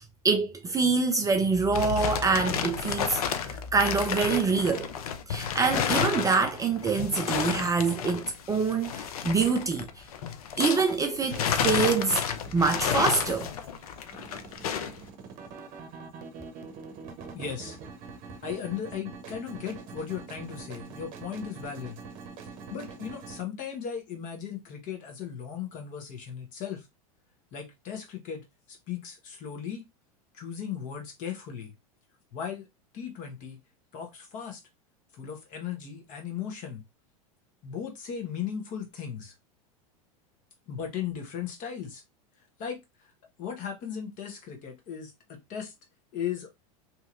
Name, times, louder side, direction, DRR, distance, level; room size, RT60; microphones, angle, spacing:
voice 1, 0.0-3.2 3.5-4.9 5.3-9.9 10.6-12.2 12.5-13.5, right 4 dB, 20° right, 0.4 m, -25 dB
sound 1, 1.3-11.0 11.3-15.0, left 8 dB, 75° left, 0.5 m, -31 dB
sound 2, 10.8-23.4, right 5 dB, 45° right, 0.8 m, -45 dB
voice 2, 17.3-17.8 18.4-22.0 22.4-26.9 27.5-29.8 30.3-31.7 32.3-32.7 32.9-33.6 33.9-34.6 35.1-36.8 37.6-39.3 40.7-42.0 42.6-43.1 43.4-45.7 46.1-46.5, left 8 dB, 45° left, 1.2 m, -37 dB
2.9 x 2.7 x 2.4 m
hypercardioid pair, 95°, 19 cm